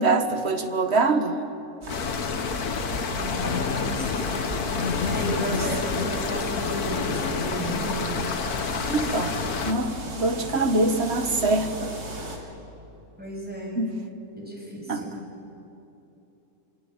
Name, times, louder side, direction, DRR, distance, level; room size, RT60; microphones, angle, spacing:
voice 1, 0.0-1.3 8.9-9.3 9.6-11.9 13.8-13.9 14.9-15.0, right 3 dB, 45° right, 8 dB, 1.7 m, -24 dB
sound 1, 1.8-12.4, right 1 dB, 90° right, 3.6 m, -36 dB
sound 2, 1.9-9.7, left 5 dB, 85° left, 1.8 m, -29 dB
voice 2, 3.1-4.3 5.1-8.2 13.2-13.9 14.4-15.2, right 1 dB, 5° right, -2 dB, 6.7 m, -34 dB
sound 3, 3.4-6.1 6.6-7.6 10.5-10.6 11.2-11.4, left 5 dB, 55° left, 1.2 m, -31 dB
27.5 x 22.5 x 9.0 m, 2.8 s
omnidirectional pair, 1.6 m